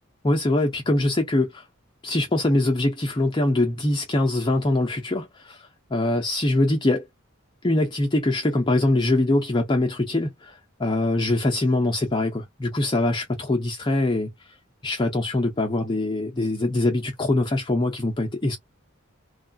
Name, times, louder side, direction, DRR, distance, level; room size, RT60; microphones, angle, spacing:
voice 1, 0.2-1.6 2.0-7.1 7.6-14.3 14.8-18.6, left 2 dB, 20° left, 0.5 m, -23 dB
3.0 x 2.3 x 2.5 m
head